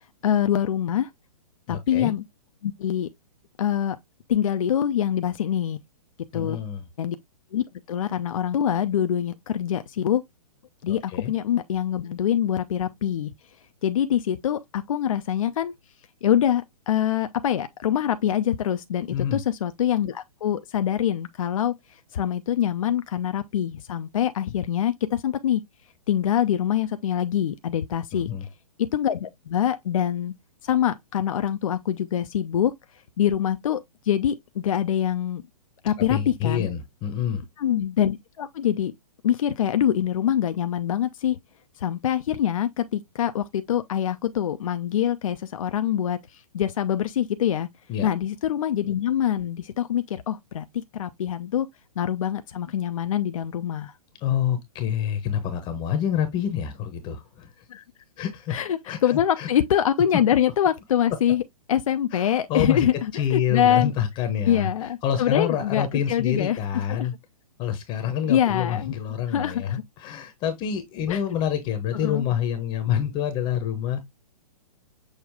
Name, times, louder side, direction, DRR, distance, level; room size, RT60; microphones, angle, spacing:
voice 1, 0.2-1.1 1.7-2.2 2.6-3.1 3.6-4.0 4.3-5.8 6.3-6.6 7.0-7.2 7.5-10.2 10.8-13.3 13.8-15.7 16.2-21.7 22.1-25.6 26.1-28.3 28.8-30.3 30.6-32.7 33.2-35.4 35.8-36.7 37.6-38.9 39.2-41.4 41.8-46.2 46.5-47.7 48.0-50.6 50.9-51.7 52.0-53.9 57.7-57.8 58.5-61.4 61.7-63.9 64.5-66.6 66.9-67.1 68.3-68.9 69.3-69.8 71.1-71.2 72.0-72.2, left 10 dB, 60° left, 0.5 m, -24 dB
voice 2, 1.7-2.1 6.3-6.8 10.9-11.3 19.1-19.4 28.1-28.5 36.1-37.4 47.9-48.1 54.2-57.5 58.2-58.6 58.9-59.5 62.1-64.7 65.0-67.1 67.6-74.0, left 9 dB, 25° left, 0.8 m, -27 dB
6.4 x 2.3 x 3.5 m
figure-of-eight pair, 125°, 19 cm